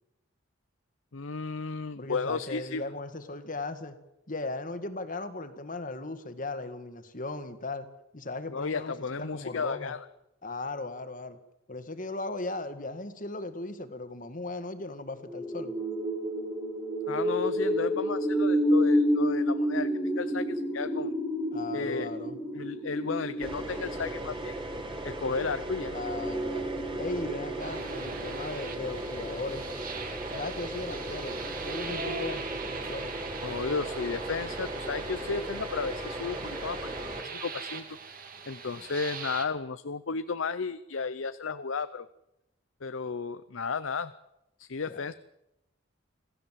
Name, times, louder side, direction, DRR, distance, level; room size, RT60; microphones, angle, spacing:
voice 1, 1.1-2.8 8.5-10.0 17.1-19.9 20.2-21.1 21.7-22.1 22.5-24.5 25.0-26.0 33.4-36.9 37.2-37.9 38.5-42.1 42.8-44.1 44.6-45.1, left 4 dB, 75° left, 13 dB, 0.7 m, -33 dB
voice 2, 2.0-4.0 4.3-7.9 8.1-9.9 10.4-11.4 11.7-15.7 21.5-22.4 25.9-29.6 30.3-33.2 44.9-45.1, left 2 dB, 40° left, 10 dB, 1.9 m, -37 dB
sound 1, 15.2-29.6, equal, 5° left, 2.4 m, -30 dB
sound 2, 23.4-37.2, right 1 dB, 25° right, 3.0 m, -38 dB
sound 3, 27.6-39.4, right 4 dB, 45° right, 2.4 m, -40 dB
27.0 x 16.5 x 7.6 m, 0.89 s
head